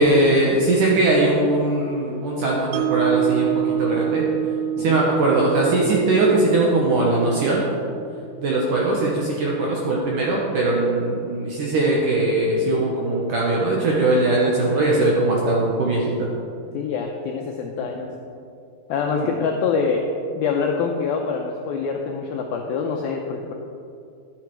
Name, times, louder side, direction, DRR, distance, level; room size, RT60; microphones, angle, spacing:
voice 1, 0.0-4.2 4.8-7.6 8.4-16.3 19.1-19.3, right 2 dB, 70° right, -3 dB, 2.0 m, -20 dB
Mallet percussion, 2.7-8.9, right 10 dB, 85° right, 2.2 m, -27 dB
voice 2, 16.7-18.1 18.9-20.0 20.4-23.5, left 5 dB, 85° left, 2 dB, 2.1 m, -25 dB
11.5 x 7.7 x 4.6 m, 2.5 s
omnidirectional pair, 5.0 m